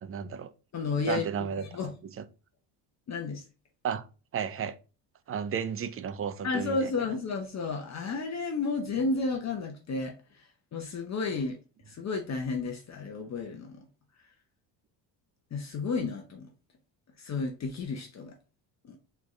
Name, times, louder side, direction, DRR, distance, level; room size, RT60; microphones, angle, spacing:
voice 1, 0.0-0.5 1.1-2.1 3.8-4.0 4.3-4.7 5.3-6.8, right 7 dB, 30° right, 0.5 m, -33 dB
voice 2, 0.7-1.9 3.1-3.4 6.4-11.6 11.9-13.9 15.5-16.5 17.2-18.4 18.8-19.0, left 4 dB, 35° left, 0.8 m, -32 dB
3.8 x 3.5 x 3.1 m
supercardioid pair, 95°, 45 cm